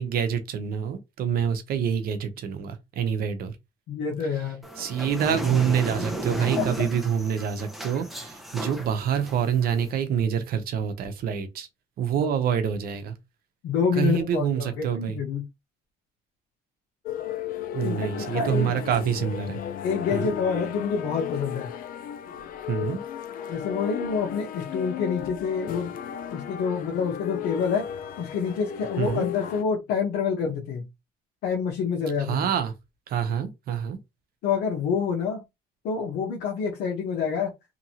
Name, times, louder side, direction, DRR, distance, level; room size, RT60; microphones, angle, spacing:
voice 1, 0.0-3.6 4.8-11.7 12.0-13.1 14.0-15.2 17.7-19.6 20.1-20.3 22.7-23.0 29.0-29.3 32.2-32.7 33.1-34.0, right 8 dB, 60° right, 0.8 m, -26 dB
voice 2, 3.9-4.6 6.6-6.9 12.2-12.3 13.6-15.4 17.8-18.7 19.8-21.7 23.5-25.9 26.3-27.9 28.2-30.9 31.4-32.5 34.4-35.4 35.8-37.5, left 6 dB, 80° left, 0.9 m, -27 dB
sound 1, 4.6-9.9, right 1 dB, ahead, 0.7 m, -34 dB
sound 2, 17.1-29.6, left 10 dB, 55° left, 0.5 m, -35 dB
2.9 x 2.6 x 2.8 m
cardioid pair, 110°, 17 cm